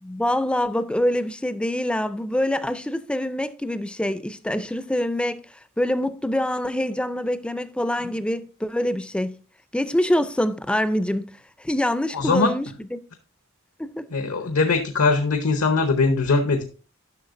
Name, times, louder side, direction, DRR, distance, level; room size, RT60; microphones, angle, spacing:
voice 1, 0.0-5.4 5.8-9.3 9.7-11.3 11.6-12.7 12.9-13.0 13.8-14.1, left 1 dB, 5° left, 0.4 m, -25 dB
voice 2, 12.1-12.6 14.1-16.6, left 3 dB, 75° left, 0.8 m, -21 dB
10.5 x 6.2 x 2.5 m
head